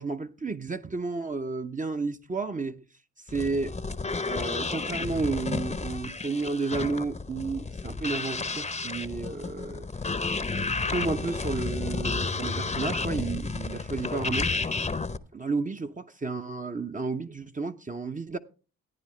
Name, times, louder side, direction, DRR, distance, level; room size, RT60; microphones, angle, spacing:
voice 1, 0.0-2.8 3.3-3.8 4.2-9.9 10.9-14.5 15.3-18.4, right 4 dB, 20° right, 0.7 m, -32 dB
sound 1, 3.3-15.2, left 4 dB, 20° left, 0.8 m, -31 dB
14.5 x 9.6 x 3.2 m
hypercardioid pair, 50°, 36 cm